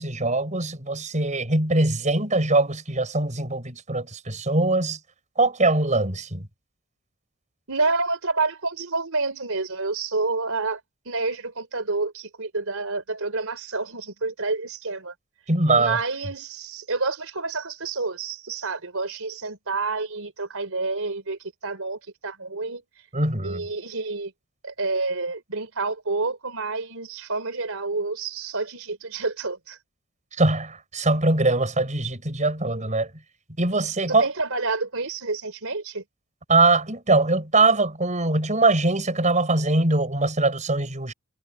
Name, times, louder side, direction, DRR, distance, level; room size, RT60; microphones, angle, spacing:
voice 1, 0.0-5.0 5.4-6.5 15.5-16.0 23.1-23.6 30.4-33.1 33.6-34.2 36.5-41.1, right 2 dB, 35° right, 5.8 m, -22 dB
voice 2, 7.7-10.8 11.1-15.1 15.7-22.8 23.4-24.3 24.6-29.8 34.1-36.0, right 3 dB, 70° right, 4.2 m, -28 dB
head